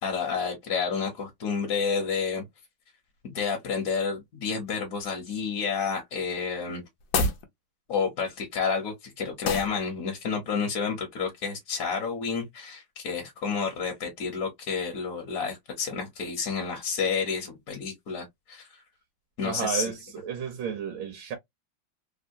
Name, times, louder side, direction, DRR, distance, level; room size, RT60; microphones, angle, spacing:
voice 1, 0.0-2.4 3.2-6.8 7.9-18.7 19.4-19.9, left 5 dB, 55° left, 1.1 m, -30 dB
sound 1, 7.0-7.5 9.4-9.8, left 3 dB, 70° left, 0.8 m, -26 dB
voice 2, 19.4-21.4, right 7 dB, 75° right, 1.4 m, -32 dB
3.6 x 2.1 x 2.6 m
omnidirectional pair, 2.1 m